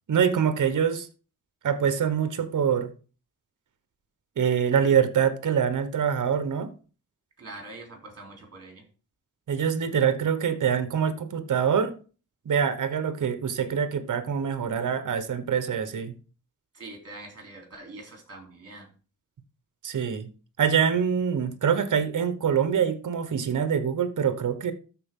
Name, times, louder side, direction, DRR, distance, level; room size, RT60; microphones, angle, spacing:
voice 1, 0.1-1.1 1.6-2.9 4.4-6.7 9.5-11.9 12.4-16.1 19.8-20.3 20.6-24.7, right 7 dB, 65° right, 1.1 m, -25 dB
voice 2, 7.4-8.8 16.7-18.9, right 2 dB, 45° right, 3.4 m, -44 dB
13.0 x 4.5 x 3.7 m
wide cardioid pair, 90°, 33 cm